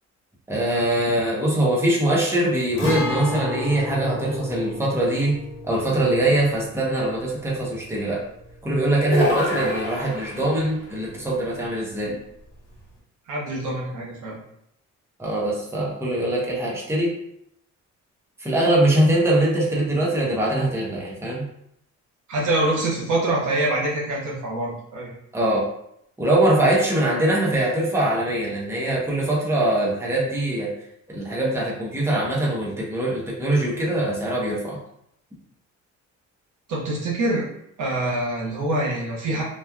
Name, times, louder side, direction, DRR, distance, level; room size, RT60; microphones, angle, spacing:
voice 1, 0.5-5.4 5.6-8.2 8.6-12.2 15.2-17.1 18.4-21.4 25.3-25.7 26.2-30.7 31.1-34.8, right 1 dB, 10° right, -4 dB, 0.8 m, -22 dB
Guitar, 2.8-10.4 10.7-10.8 12.8-12.9, left 1 dB, 65° left, 1.4 m, -33 dB
sound 1, 9.1-10.7, left 1 dB, 40° left, 1.2 m, -25 dB
voice 2, 13.3-14.4 22.3-25.1 36.7-37.5 37.8-39.4, right 1 dB, 75° right, -4 dB, 1.0 m, -25 dB
3.0 x 2.3 x 2.3 m, 0.74 s
cardioid pair, 90°, 30 cm